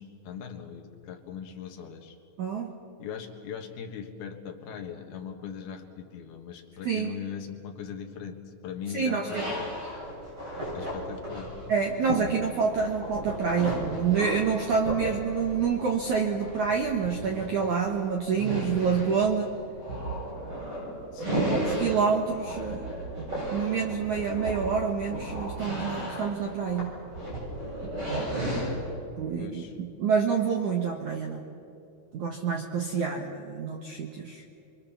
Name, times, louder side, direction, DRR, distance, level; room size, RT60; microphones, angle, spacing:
voice 1, 0.0-2.2 3.0-9.9 10.7-11.6 21.1-21.6 29.4-29.8, left 7 dB, 65° left, 3 dB, 3.1 m, -40 dB
voice 2, 2.4-2.7 6.8-7.1 8.9-9.4 11.7-19.5 21.5-22.9 23.5-26.9 29.2-29.6 30.0-31.4 32.1-34.4, right 6 dB, 70° right, 2 dB, 1.8 m, -27 dB
sound 1, 9.3-28.9, right 1 dB, 25° right, 8.8 m, -34 dB
28.0 x 23.5 x 7.1 m, 2.7 s
omnidirectional pair, 5.5 m